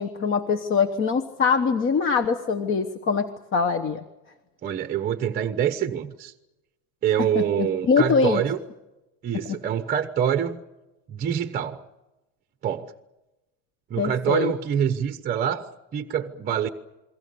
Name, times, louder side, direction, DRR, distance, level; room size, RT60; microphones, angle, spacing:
voice 1, 0.0-4.0 7.3-8.4 14.0-14.5, left 5 dB, 30° left, 8 dB, 1.2 m, -23 dB
voice 2, 4.6-6.3 7.0-8.6 9.2-10.6 11.1-11.8 12.6-12.9 13.9-16.7, right 9 dB, 20° right, 9 dB, 0.9 m, -25 dB
28.5 x 22.5 x 6.9 m, 1.0 s
cardioid pair, 175°, 42 cm